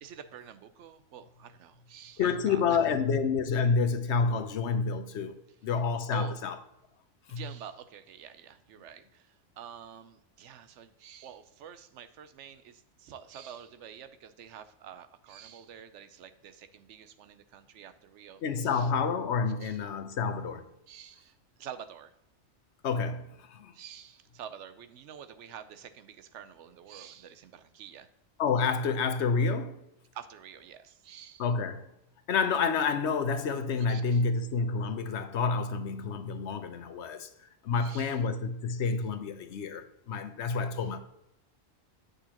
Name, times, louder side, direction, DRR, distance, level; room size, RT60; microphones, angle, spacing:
voice 1, 0.0-2.8 6.1-6.4 7.3-18.9 19.6-19.8 20.9-22.1 23.7-28.1 30.1-31.4 33.9-34.2 37.8-38.2, right 9 dB, 80° right, 0.9 m, -48 dB
voice 2, 2.2-5.3 5.6-6.6 7.3-7.4 18.4-20.6 22.8-23.7 28.4-29.8 31.4-31.9 32.3-37.3 37.6-41.0, left 5 dB, 70° left, 1.0 m, -29 dB
8.2 x 6.4 x 2.9 m
omnidirectional pair, 1.2 m